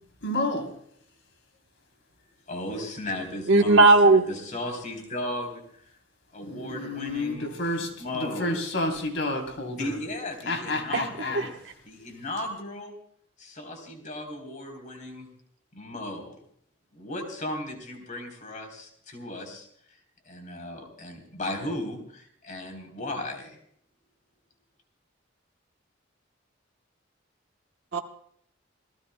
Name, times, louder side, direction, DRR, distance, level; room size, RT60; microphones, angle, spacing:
voice 1, 0.2-0.7 6.4-10.0 10.4-11.5, left 1 dB, 65° left, 4 dB, 3.4 m, -30 dB
voice 2, 2.5-5.6 6.3-8.5 9.7-11.6 11.8-12.9 13.4-15.3 15.7-16.4 16.9-20.0 20.2-23.6, left 1 dB, 40° left, 3 dB, 3.6 m, -36 dB
voice 3, 3.5-4.2 10.9-11.0 11.3-11.5 27.9-28.0, right 2 dB, 70° right, 3 dB, 1.2 m, -16 dB
27.5 x 18.0 x 2.2 m, 0.65 s
head